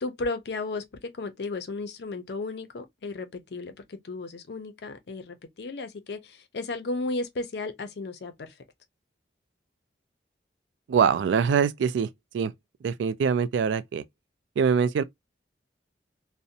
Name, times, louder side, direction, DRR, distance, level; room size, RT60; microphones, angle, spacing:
voice 1, 0.0-8.5, left 3 dB, 65° left, 0.5 m, -34 dB
voice 2, 10.9-12.5 12.8-14.0 14.6-15.0, right 6 dB, 85° right, 0.3 m, -24 dB
2.5 x 2.1 x 2.6 m
head